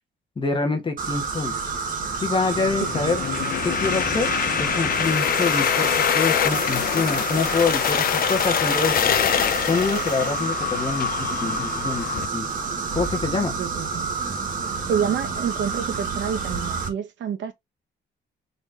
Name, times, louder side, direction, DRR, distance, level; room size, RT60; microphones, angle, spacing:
voice 1, 0.4-1.6 2.2-3.2 3.6-4.3 4.6-9.1 9.7-12.0 12.3-12.5 12.9-13.5, left 4 dB, 25° left, 1.2 m, -26 dB
sound 1, 1.0-16.9, right 5 dB, 45° right, 1.4 m, -29 dB
sound 2, 2.5-12.3, left 9 dB, 50° left, 0.5 m, -24 dB
voice 2, 13.6-14.1 14.9-17.5, right 8 dB, 75° right, 1.1 m, -28 dB
4.0 x 3.1 x 3.3 m
cardioid pair, 150°, 19 cm